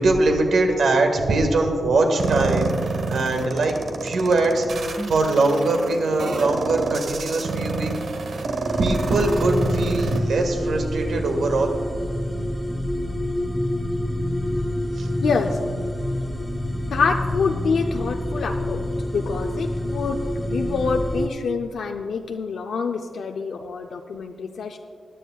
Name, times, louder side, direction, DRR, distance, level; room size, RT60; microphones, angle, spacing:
voice 1, 0.0-3.8 4.0-8.0 8.8-11.7 15.0-15.1, right 2 dB, 75° right, 4 dB, 1.6 m, -22 dB
sound 1, 2.2-10.2, right 3 dB, 60° right, 1.1 m, -28 dB
sound 2, 5.0-8.3, left 3 dB, 25° right, 3.0 m, -40 dB
sound 3, 8.7-21.3, left 1 dB, 5° left, 0.7 m, -27 dB
voice 2, 15.2-15.6 16.9-24.8, left 5 dB, 85° left, 3 dB, 0.5 m, -26 dB
21.0 x 10.0 x 2.3 m, 2.2 s
wide cardioid pair, 150°, 0 cm